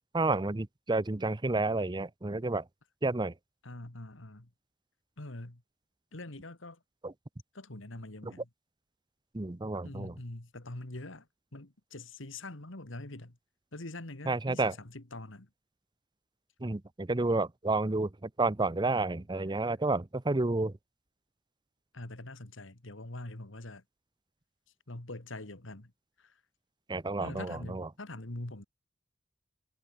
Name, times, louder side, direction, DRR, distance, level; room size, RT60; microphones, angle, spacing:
voice 1, 0.1-2.6 3.0-3.3 7.0-7.1 9.3-10.1 14.3-14.7 16.6-20.7 26.9-27.9, right 2 dB, 20° right, 0.7 m, -30 dB
voice 2, 3.6-4.5 5.2-5.6 6.1-6.8 7.5-8.5 9.8-11.3 11.5-13.4 13.7-15.5 21.9-23.8 24.9-25.9 26.2-26.4 27.2-28.6, left 2 dB, 65° left, 2.2 m, -44 dB
head